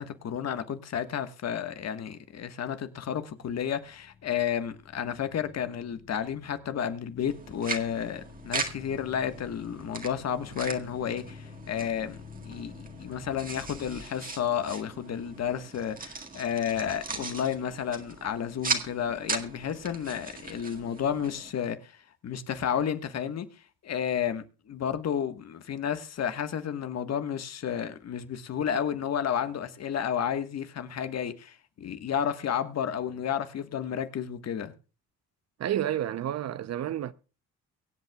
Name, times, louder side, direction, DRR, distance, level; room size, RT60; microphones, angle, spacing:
voice 1, 0.0-12.2 12.4-12.7 13.0-21.9 22.2-23.5 23.8-34.7, left 8 dB, 60° left, 1.4 m, -31 dB
sound 1, 3.2-14.0, left 7 dB, 85° left, 5.1 m, -50 dB
sound 2, 7.2-21.5, right 4 dB, 30° right, 1.9 m, -39 dB
voice 2, 35.6-37.1, right 11 dB, 60° right, 0.7 m, -30 dB
24.0 x 8.0 x 2.3 m
cardioid pair, 90°, 30 cm